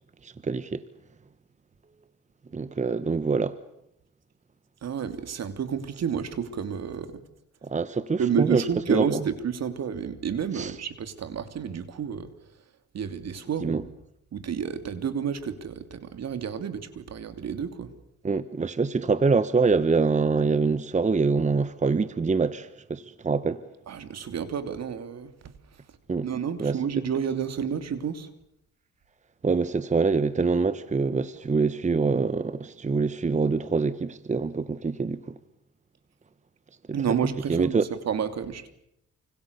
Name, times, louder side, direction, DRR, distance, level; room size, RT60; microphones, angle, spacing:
voice 1, 0.2-0.8 2.5-3.6 7.6-9.2 10.5-10.7 13.6-13.8 18.2-23.6 26.1-26.3 26.6-26.8 29.4-35.2 37.5-37.8, right 4 dB, 25° right, 1.1 m, -25 dB
voice 2, 4.8-7.2 8.2-12.3 12.9-13.9 14.3-17.9 23.9-25.5 26.2-28.3 36.9-38.7, right 7 dB, 60° right, 3.0 m, -30 dB
29.0 x 26.0 x 6.9 m
cardioid pair, 90°, 30 cm